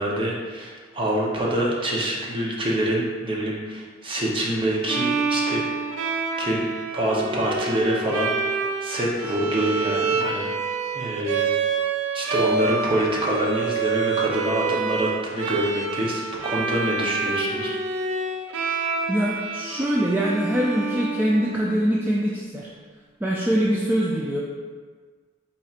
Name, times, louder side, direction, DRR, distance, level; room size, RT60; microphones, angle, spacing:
voice 1, 0.0-5.6 6.4-6.6 6.9-10.5 10.9-11.5 12.1-17.7, right 1 dB, 25° right, -3 dB, 0.7 m, -25 dB
Bowed string instrument, 4.9-21.8, right 4 dB, 85° right, 0.4 m, -27 dB
voice 2, 19.1-22.7 23.2-24.4, equal, 10° right, -5 dB, 0.3 m, -23 dB
4.3 x 4.1 x 2.4 m, 1.5 s
head